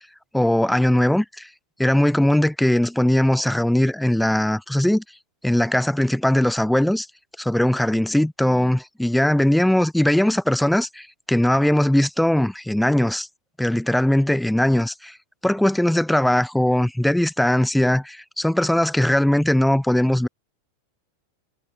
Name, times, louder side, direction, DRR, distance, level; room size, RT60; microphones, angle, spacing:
voice 1, 0.3-1.5 1.8-5.0 5.4-7.1 7.4-13.3 13.6-15.2 15.4-20.3, left 1 dB, ahead, 0.3 m, -20 dB
figure-of-eight pair, 90°, 0 cm